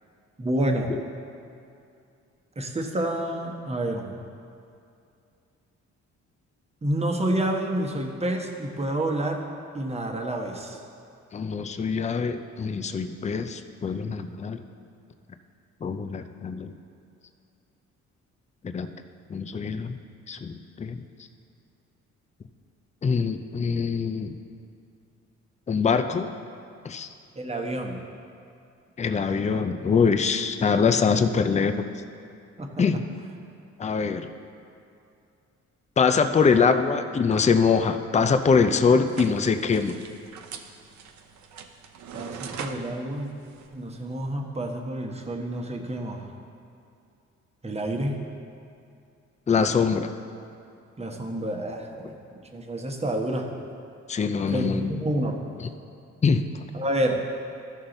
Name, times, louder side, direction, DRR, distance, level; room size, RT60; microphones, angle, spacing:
voice 1, 0.4-0.9 2.6-4.2 6.8-9.5 9.7-10.8 27.4-28.0 32.6-32.9 42.1-43.3 43.7-46.3 47.6-48.2 51.0-52.1 52.5-53.5 54.5-55.4 56.7-57.2, right 1 dB, 20° right, 2 dB, 1.1 m, -29 dB
voice 2, 11.3-14.6 15.8-16.7 18.6-18.9 19.3-20.0 20.3-21.0 23.0-24.4 25.7-26.3 26.8-27.1 29.0-31.7 32.8-33.0 33.8-34.3 36.0-40.0 49.5-50.1 54.1-54.9 56.2-56.4, left 5 dB, 25° left, 8 dB, 0.5 m, -23 dB
sound 1, 39.1-44.3, right 6 dB, 65° right, 0.8 m, -42 dB
14.0 x 5.6 x 3.9 m, 2.5 s
cardioid pair, 90°, 30 cm